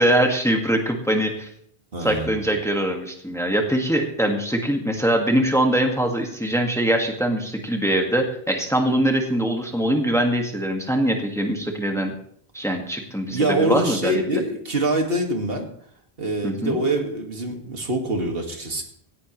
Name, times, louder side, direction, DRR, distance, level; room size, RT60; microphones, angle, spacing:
voice 1, 0.0-1.5 2.0-12.2 12.5-14.4 16.4-16.8, right 1 dB, 5° left, 3 dB, 1.8 m, -22 dB
voice 2, 1.9-2.4 13.3-15.7 16.2-18.8, right 1 dB, 70° right, 3 dB, 2.2 m, -24 dB
17.0 x 15.5 x 3.2 m, 0.64 s
omnidirectional pair, 1.0 m